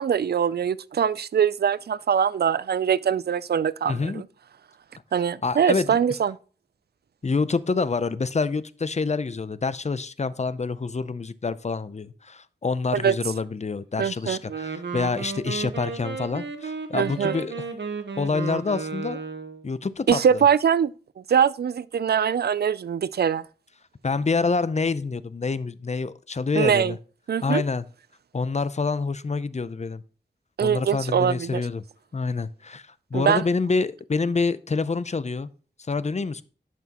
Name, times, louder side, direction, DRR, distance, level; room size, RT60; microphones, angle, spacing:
voice 1, 0.0-4.2 5.1-6.4 12.9-13.1 14.0-14.4 17.0-17.3 20.1-20.9 21.3-23.4 26.6-27.0 27.3-27.6 30.6-31.6 33.1-33.4, right 8 dB, 60° right, 0.4 m, -22 dB
voice 2, 3.9-4.2 5.4-6.0 7.2-17.7 18.2-19.2 19.6-20.4 24.0-27.0 27.4-27.8 28.3-30.0 30.6-31.8 32.1-35.5 35.9-36.4, left 4 dB, 40° left, 0.6 m, -27 dB
Wind instrument woodwind instrument, 14.4-19.6, right 5 dB, 80° right, 1.0 m, -33 dB
11.0 x 6.0 x 3.0 m
cardioid pair, 50°, 18 cm